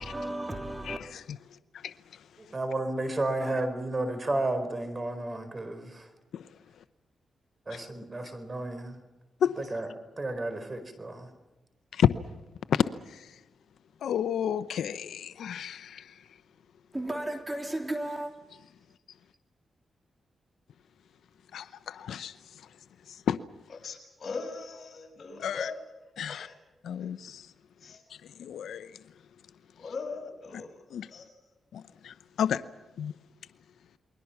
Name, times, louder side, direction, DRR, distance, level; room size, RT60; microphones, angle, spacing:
voice 1, 0.0-1.0 3.5-3.6 16.9-18.3, right 1 dB, 15° right, 3.2 m, -34 dB
voice 2, 0.8-1.4 1.7-2.2 7.7-7.8 9.4-9.5 11.9-12.1 12.7-13.4 14.0-16.2 21.5-22.6 23.1-23.4 25.4-25.7 26.2-26.5 26.8-27.5 28.1-29.0 30.9-31.1 31.7-32.6 33.0-33.1, left 9 dB, 85° left, 0.7 m, -31 dB
voice 3, 2.5-5.8 7.7-9.0 9.7-9.9 10.2-11.3, right 2 dB, 35° right, 4.5 m, -32 dB
voice 4, 23.8-25.7 26.3-26.5 27.8-28.0 29.8-30.7 31.1-31.3, left 4 dB, 50° left, 6.6 m, -39 dB
29.0 x 22.0 x 5.9 m
cardioid pair, 70°, 0 cm